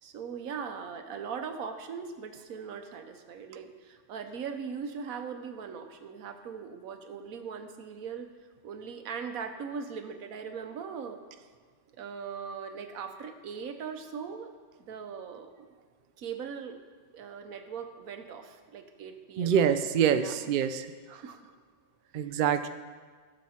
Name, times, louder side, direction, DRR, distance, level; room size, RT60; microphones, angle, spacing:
voice 1, 0.0-8.3 8.6-11.2 12.0-14.5 14.8-15.7 16.2-16.8 17.1-19.7 20.1-20.3 21.1-21.5 22.2-22.3, right 6 dB, 90° right, 7 dB, 1.3 m, -40 dB
voice 2, 19.4-20.9 22.1-22.7, right 8 dB, 55° right, 9 dB, 0.5 m, -25 dB
15.5 x 6.6 x 4.3 m, 1.5 s
omnidirectional pair, 1.4 m